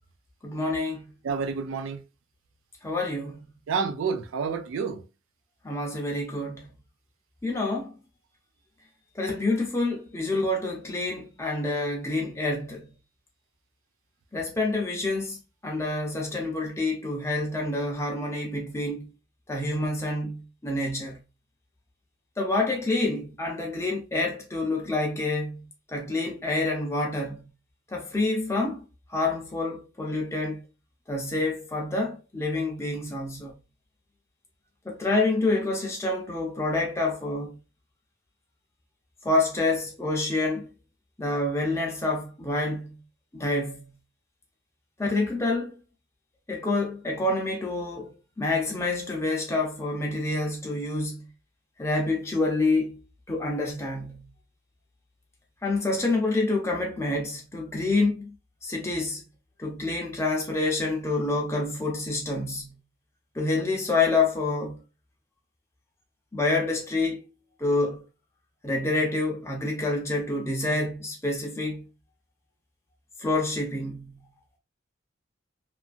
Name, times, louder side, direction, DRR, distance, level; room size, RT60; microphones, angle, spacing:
voice 1, 0.4-1.1 2.8-3.4 5.6-6.7 7.4-8.0 9.1-12.9 14.3-19.1 19.5-21.2 22.4-27.4 27.9-28.8 29.1-30.6 31.1-33.5 34.8-37.6 39.2-40.7 41.2-43.0 43.3-43.9 45.0-45.8 46.5-51.3 51.8-53.0 53.3-54.3 55.6-58.4 58.6-59.2 59.6-62.8 63.3-64.8 66.3-67.3 67.6-68.0 68.6-71.8 73.2-74.2, left 2 dB, 15° left, 0.6 m, -27 dB
voice 2, 1.2-2.0 3.7-5.0, right 5 dB, 85° right, 0.4 m, -29 dB
2.7 x 2.5 x 2.4 m
head